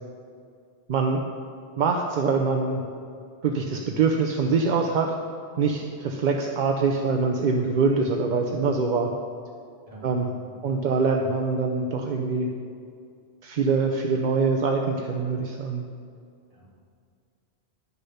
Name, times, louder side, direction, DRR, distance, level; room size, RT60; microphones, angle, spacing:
voice 1, 0.9-1.2 1.8-2.8 3.4-5.1 5.6-9.1 10.0-10.3 10.6-12.5 13.4-15.8, right 4 dB, 50° right, 2 dB, 0.7 m, -24 dB
voice 2, 9.9-10.6 16.5-16.8, right 1 dB, 30° right, -5 dB, 2.5 m, -47 dB
10.5 x 6.9 x 5.6 m, 2.4 s
omnidirectional pair, 1.2 m